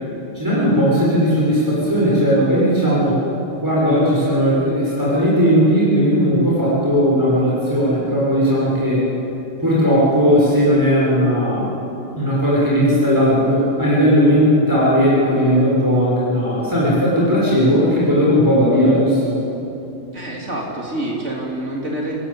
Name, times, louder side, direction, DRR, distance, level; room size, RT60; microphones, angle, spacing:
voice 1, 0.3-3.2 3.6-9.1 9.6-11.7 12.2-19.4, equal, 15° right, -7 dB, 6.4 m, -16 dB
voice 2, 20.1-22.2, right 1 dB, 80° right, -2 dB, 4.0 m, -27 dB
29.0 x 22.0 x 8.7 m, 2.9 s
omnidirectional pair, 1.2 m